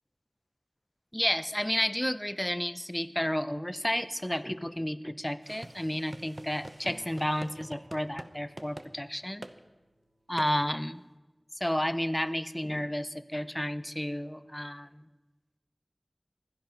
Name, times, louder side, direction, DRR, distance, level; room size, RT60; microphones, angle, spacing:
voice 1, 1.1-9.4 10.3-11.0 11.5-15.1, equal, 15° left, 15 dB, 0.6 m, -31 dB
sound 1, 5.4-8.3 8.6-8.9 9.4-9.6 10.4-10.5, right 1 dB, 50° right, 0.9 m, -45 dB
Acoustic guitar, 6.8-10.6, right 1 dB, 85° right, 1.9 m, -57 dB
16.0 x 12.0 x 5.8 m, 1.2 s
wide cardioid pair, 45°, 0 cm